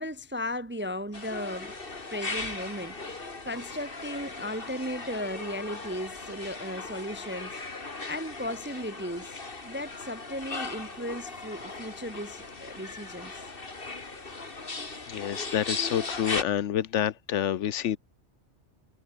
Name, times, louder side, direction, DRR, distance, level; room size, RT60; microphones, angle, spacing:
voice 1, 0.0-1.7 2.1-13.4, left 1 dB, 15° right, 0.4 m, -36 dB
sound 1, 1.1-16.4, left 3 dB, 50° left, 2.6 m, -38 dB
voice 2, 15.1-18.0, left 10 dB, 85° left, 1.1 m, -28 dB
omnidirectional pair, 1.2 m